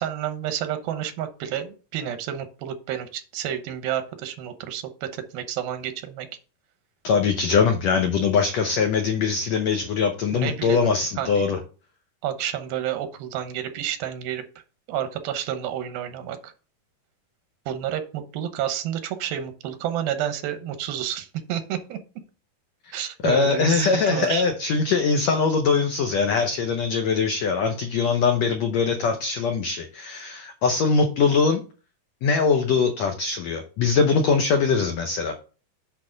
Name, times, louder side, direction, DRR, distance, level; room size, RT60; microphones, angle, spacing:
voice 1, 0.0-6.3 10.3-10.9 11.2-11.5 12.2-14.4 14.9-16.5 17.7-22.0 22.9-24.4, right 10 dB, 85° right, 8 dB, 2.9 m, -30 dB
voice 2, 7.0-11.6 23.2-31.6 32.2-35.4, left 5 dB, 85° left, 5 dB, 1.5 m, -22 dB
8.1 x 6.1 x 3.9 m, 0.36 s
omnidirectional pair, 4.2 m